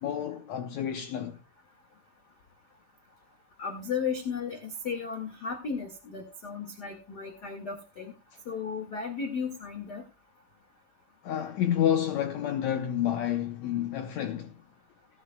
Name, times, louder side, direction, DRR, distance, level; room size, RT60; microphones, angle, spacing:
voice 1, 0.0-1.4 11.2-14.5, left 10 dB, 75° left, 1.7 m, -29 dB
voice 2, 3.6-8.1 8.5-10.0, left 6 dB, 35° left, 1.8 m, -35 dB
18.5 x 11.0 x 2.3 m
omnidirectional pair, 4.1 m